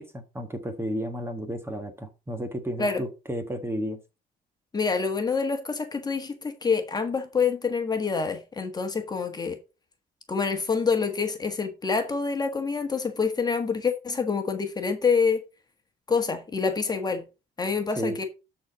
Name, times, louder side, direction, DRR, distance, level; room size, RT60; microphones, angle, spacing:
voice 1, 0.0-4.0 18.0-18.2, equal, 15° right, 1.4 m, -32 dB
voice 2, 4.7-9.6 10.3-15.4 16.1-17.3 17.6-18.2, left 5 dB, 25° left, 1.5 m, -26 dB
12.5 x 4.3 x 4.0 m
cardioid pair, 110°, 17 cm